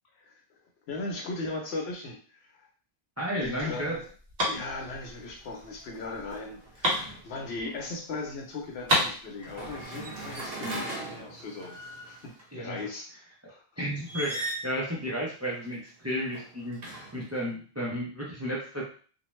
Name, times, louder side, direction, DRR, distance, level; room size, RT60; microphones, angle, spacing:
voice 1, 0.9-2.7 3.4-4.1 4.5-11.8 12.1-13.1 13.5-13.6, left 3 dB, 85° left, 1 dB, 1.0 m, -38 dB
voice 2, 3.2-4.0 10.6-10.8 12.5-12.8 13.8-18.8, equal, 20° right, -4 dB, 0.5 m, -33 dB
sound 1, 3.4-8.0 8.2-8.3 8.6-9.8, equal, 45° right, 1.0 m, -31 dB
sound 2, 4.8-5.0 5.4-7.5 9.4-12.4 14.0-14.8 16.0-17.4, right 2 dB, 70° right, 1.1 m, -39 dB
2.5 x 2.2 x 3.1 m, 0.42 s
omnidirectional pair, 1.0 m